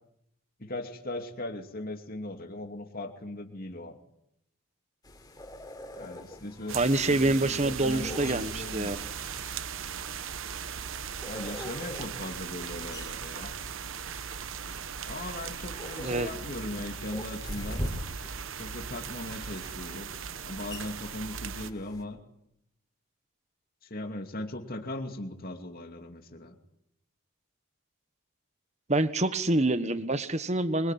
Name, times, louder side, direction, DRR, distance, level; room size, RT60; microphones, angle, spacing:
voice 1, 0.6-4.0 5.9-6.8 7.0-9.0 11.2-13.5 15.1-17.8 18.6-20.1 20.4-22.2 23.8-26.5, left 1 dB, 40° left, 5 dB, 2.7 m, -38 dB
sound 1, 5.0-22.0, equal, 20° left, 3.5 m, -44 dB
voice 2, 6.7-9.0 16.0-16.3 28.9-30.9, right 2 dB, 30° right, 12 dB, 1.3 m, -26 dB
sound 2, 6.7-21.7, right 7 dB, 60° right, 1.0 m, -38 dB
24.5 x 23.0 x 9.3 m, 0.79 s
head